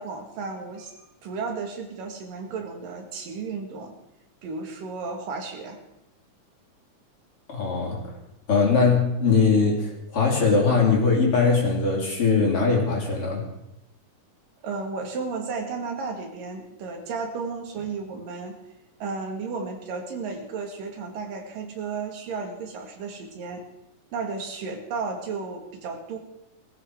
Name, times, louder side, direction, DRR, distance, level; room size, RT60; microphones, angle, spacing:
voice 1, 0.0-3.9 4.4-5.8 14.6-18.6 19.0-23.7 24.1-26.2, right 4 dB, 85° right, 3 dB, 3.8 m, -33 dB
voice 2, 7.5-8.1 8.5-13.4, left 4 dB, 45° left, -1 dB, 3.9 m, -21 dB
19.5 x 14.5 x 4.8 m, 0.89 s
omnidirectional pair, 3.8 m